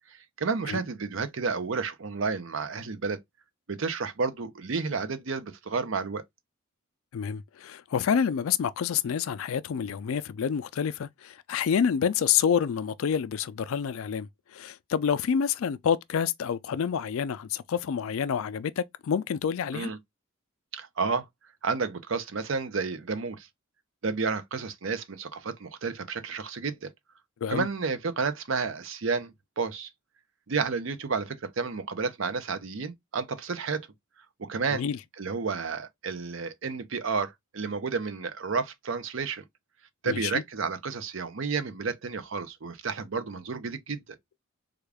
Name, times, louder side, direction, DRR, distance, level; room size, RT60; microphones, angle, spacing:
voice 1, 0.4-3.2 3.7-6.2 19.7-20.0 20.7-21.3 21.6-23.5 24.0-26.9 27.5-29.9 30.5-33.8 34.5-34.8 35.2-39.4 40.0-44.0, right 4 dB, 60° right, 0.6 m, -31 dB
voice 2, 7.1-19.9 27.4-27.7 34.7-35.0 40.0-40.4, left 7 dB, 70° left, 0.4 m, -28 dB
3.6 x 2.3 x 3.3 m
head